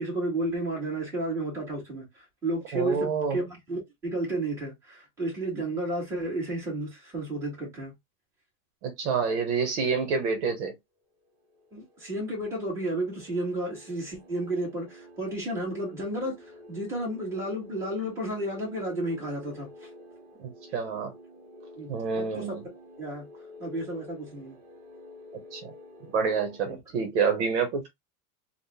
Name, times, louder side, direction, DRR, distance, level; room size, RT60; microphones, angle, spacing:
voice 1, 0.0-7.9 11.7-19.9 21.8-21.9 22.2-22.6 23.0-23.3 23.6-24.6 26.7-26.8, right 1 dB, 5° right, 1.6 m, -32 dB
voice 2, 2.7-3.4 8.8-10.7 20.4-21.1 21.9-22.6 25.5-25.7 26.1-27.9, right 5 dB, 55° right, 1.0 m, -28 dB
sound 1, 11.4-26.6, left 1 dB, 20° right, 0.8 m, -49 dB
3.7 x 2.2 x 3.4 m
supercardioid pair, 175°, 42 cm